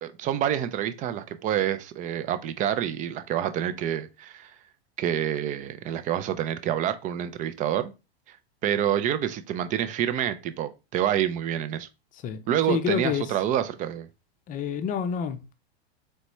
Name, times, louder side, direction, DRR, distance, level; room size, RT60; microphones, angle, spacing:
voice 1, 0.0-4.5 5.0-7.9 8.3-8.4 8.6-11.9 12.5-14.1, right 10 dB, 25° right, 0.4 m, -27 dB
voice 2, 12.7-13.4 14.5-15.5, left 7 dB, 25° left, 0.6 m, -28 dB
4.2 x 3.3 x 3.0 m
hypercardioid pair, 110°, 32 cm